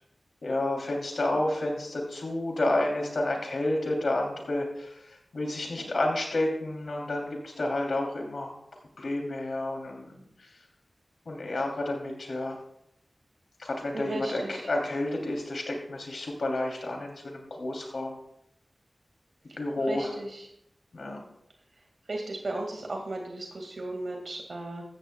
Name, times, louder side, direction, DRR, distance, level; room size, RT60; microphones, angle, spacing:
voice 1, 0.4-8.5 9.0-10.5 11.2-12.6 13.6-18.2 19.6-20.2 20.9-21.2, left 1 dB, 85° left, 1 dB, 2.9 m, -30 dB
voice 2, 13.9-14.5 19.9-20.3 22.1-24.8, right 2 dB, 70° right, 1 dB, 2.0 m, -35 dB
15.5 x 14.0 x 2.3 m, 0.76 s
wide cardioid pair, 90°, 0 cm